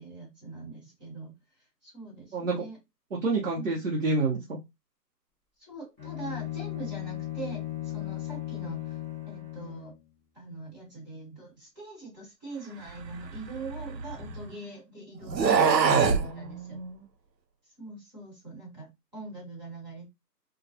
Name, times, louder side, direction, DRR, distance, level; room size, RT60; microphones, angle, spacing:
voice 1, 0.0-1.3 1.8-2.8 3.5-3.7 5.6-9.0 9.3-9.9 10.3-16.8 17.8-20.1, right 3 dB, 25° right, -4 dB, 1.3 m, -43 dB
voice 2, 2.3-2.6 3.2-4.6 15.5-17.0, right 3 dB, 50° right, -4 dB, 0.8 m, -30 dB
Bowed string instrument, 6.0-10.0, left 14 dB, 10° right, 0.8 m, -36 dB
sound 1, 13.0-14.5 15.2-16.3, right 6 dB, 85° right, 0.7 m, -24 dB
2.3 x 2.2 x 2.6 m, 0.21 s
hypercardioid pair, 165°, 49 cm